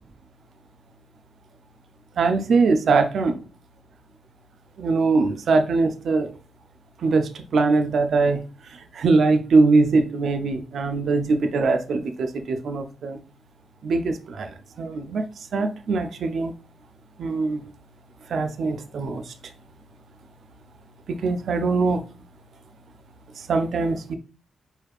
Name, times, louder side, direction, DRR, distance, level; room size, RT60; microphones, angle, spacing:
voice 1, 2.2-3.4 4.8-6.3 7.0-13.2 13.8-15.3 15.5-16.5 17.2-17.6 18.3-19.3 21.1-22.0 23.4-24.1, right 3 dB, 65° right, 7 dB, 0.5 m, -22 dB
4.6 x 3.3 x 2.4 m, 0.37 s
hypercardioid pair, 45°, 0 cm